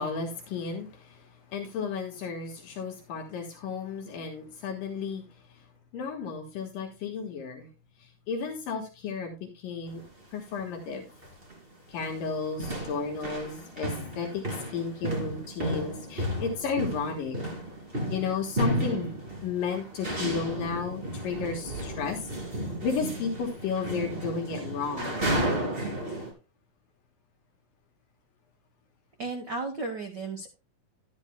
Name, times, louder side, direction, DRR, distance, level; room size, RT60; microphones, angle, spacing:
voice 1, 0.0-5.2 5.9-7.7 8.3-10.0 10.3-11.1 11.9-14.4 14.7-17.4 18.1-19.2 19.4-22.3 22.8-25.2, left 5 dB, 75° left, 2 dB, 3.0 m, -33 dB
sound 1, 9.9-10.1 10.8-10.9 11.2-11.6 11.9-26.3, right 1 dB, 20° right, 2.5 m, -33 dB
voice 2, 29.2-30.5, right 3 dB, 80° right, 4 dB, 0.9 m, -34 dB
12.0 x 10.5 x 2.2 m, 0.29 s
omnidirectional pair, 3.9 m